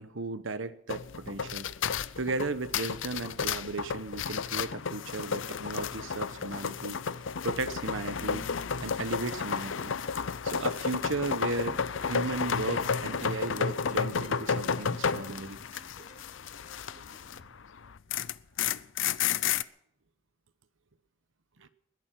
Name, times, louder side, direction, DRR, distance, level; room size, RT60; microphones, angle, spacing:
voice 1, 0.0-1.7 2.2-7.0 7.4-8.5 8.8-9.9 10.4-15.8 21.6-21.7, right 3 dB, 75° right, 12 dB, 1.1 m, -35 dB
sound 1, 0.9-17.5 17.8-19.6, left 6 dB, 70° left, 0.6 m, -32 dB
sound 2, 12.1-17.5, left 2 dB, 40° left, 2.5 m, -56 dB
21.0 x 11.5 x 5.9 m, 0.70 s
head